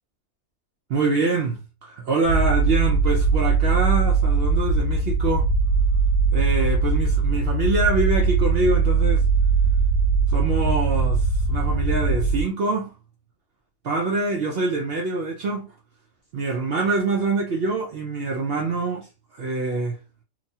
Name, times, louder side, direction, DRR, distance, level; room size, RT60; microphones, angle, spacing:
voice 1, 0.9-5.5 6.3-9.2 10.3-12.9 13.8-15.7 16.3-19.1 19.3-20.0, right 3 dB, 65° right, 0.6 m, -25 dB
sound 1, 2.3-12.4, right 4 dB, 70° left, 1.1 m, -20 dB
2.9 x 2.1 x 2.7 m
omnidirectional pair, 1.5 m